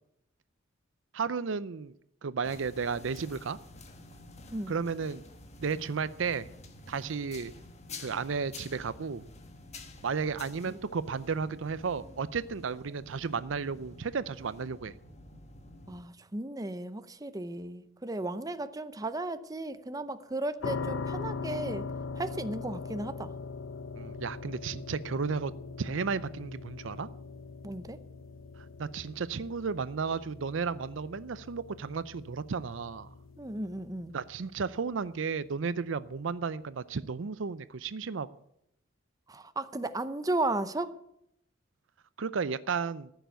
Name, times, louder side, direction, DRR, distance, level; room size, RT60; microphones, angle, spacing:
voice 1, 1.1-1.9 2.2-3.6 4.7-5.2 5.6-6.5 6.9-7.5 8.0-9.3 10.0-14.9 23.9-25.5 25.8-27.1 28.6-33.1 34.1-38.3 42.2-43.1, right 5 dB, 70° right, 16 dB, 0.5 m, -33 dB
sound 1, 2.4-16.0, left 2 dB, 35° left, 1.5 m, -49 dB
voice 2, 15.9-21.9 22.2-23.3 27.6-28.0 33.4-34.1 39.3-40.9, right 2 dB, 20° right, 11 dB, 0.7 m, -35 dB
sound 2, 20.6-35.5, left 4 dB, 85° left, 0.7 m, -41 dB
14.5 x 7.0 x 9.1 m, 0.76 s
head